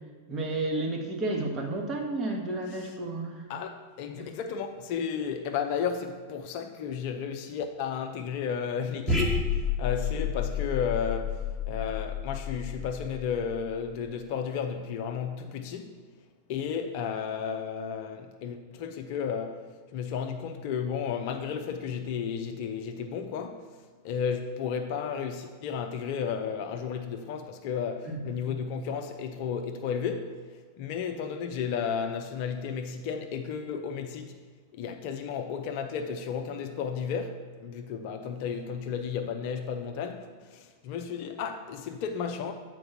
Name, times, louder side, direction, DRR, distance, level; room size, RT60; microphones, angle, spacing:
voice 1, 0.3-3.4 28.1-28.2, right 2 dB, 25° right, 1.4 m, -31 dB
voice 2, 3.5-15.9 16.5-19.7 19.9-23.7 24.0-30.3 30.8-34.3 34.7-42.5, left 7 dB, 45° left, 0.6 m, -33 dB
sound 1, 9.1-13.7, left 5 dB, 5° left, 1.4 m, -30 dB
7.8 x 4.6 x 5.8 m
figure-of-eight pair, 90°, 0 cm